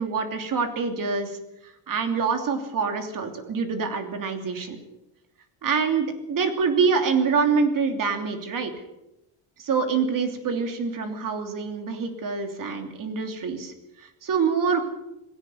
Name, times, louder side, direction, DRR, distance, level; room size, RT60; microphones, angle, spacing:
voice 1, 0.0-1.4 1.6-4.8 5.6-8.7 9.6-14.8, right 5 dB, 40° right, 6 dB, 3.0 m, -26 dB
19.5 x 16.5 x 8.0 m, 0.91 s
cardioid pair, 165°, 49 cm